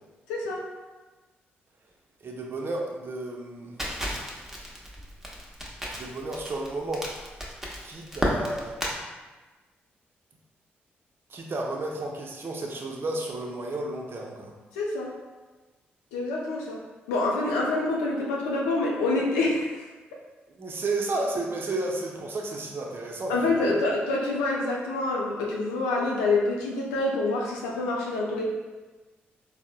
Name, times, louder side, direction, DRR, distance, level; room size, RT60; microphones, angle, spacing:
voice 1, 0.3-0.7 14.7-15.1 16.1-16.8 17.1-19.8 23.3-28.5, left 2 dB, 85° left, -2 dB, 0.4 m, -26 dB
voice 2, 2.2-3.8 5.9-7.1 7.8-8.8 11.3-14.5 20.6-23.8, right 2 dB, 45° right, 0 dB, 0.6 m, -32 dB
Crackle, 3.8-8.9, equal, 5° right, 0.8 m, -32 dB
3.6 x 2.0 x 2.3 m, 1.2 s
hypercardioid pair, 40°, 5 cm